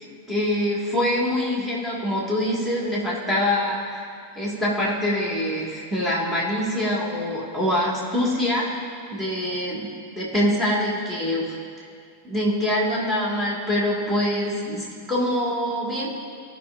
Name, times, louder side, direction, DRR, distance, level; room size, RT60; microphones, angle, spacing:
voice 1, 0.3-4.1 4.4-8.8 9.1-9.9 10.2-11.5 12.2-16.1, left 1 dB, 5° right, -6 dB, 2.0 m, -24 dB
15.0 x 5.6 x 2.6 m, 2.4 s
figure-of-eight pair, 90°, 0 cm